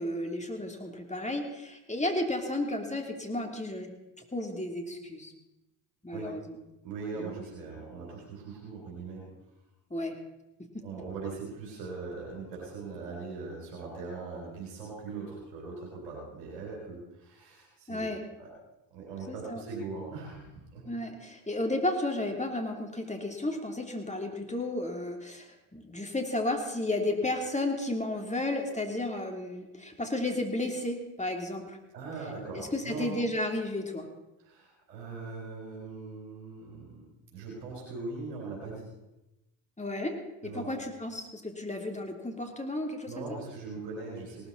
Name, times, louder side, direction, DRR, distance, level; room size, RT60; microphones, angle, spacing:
voice 1, 0.0-3.9 4.3-5.3 6.0-6.6 7.2-7.3 9.9-10.1 10.7-10.8 17.9-18.2 19.3-19.6 20.8-31.8 32.5-34.1 39.8-40.1 40.4-43.3, left 1 dB, 15° left, 3 dB, 3.3 m, -33 dB
voice 2, 6.8-9.2 10.8-18.5 18.9-20.9 31.9-33.2 34.4-37.0 37.3-38.9 40.4-40.7 43.0-44.5, right 4 dB, 90° right, -4 dB, 4.1 m, -40 dB
18.0 x 13.5 x 4.2 m, 0.97 s
hypercardioid pair, 45°, 48 cm